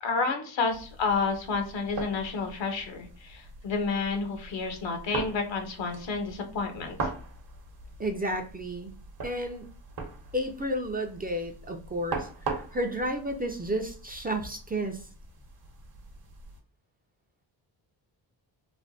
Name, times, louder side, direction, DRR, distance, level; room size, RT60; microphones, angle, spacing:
voice 1, 0.0-7.0, left 4 dB, 70° left, 5 dB, 0.9 m, -30 dB
sound 1, 0.7-16.6, right 3 dB, 50° right, 0.9 m, -41 dB
voice 2, 8.0-8.9 9.2-9.7 10.3-15.1, equal, 20° right, 3 dB, 0.4 m, -32 dB
3.2 x 2.2 x 2.7 m, 0.42 s
cardioid pair, 70°, 46 cm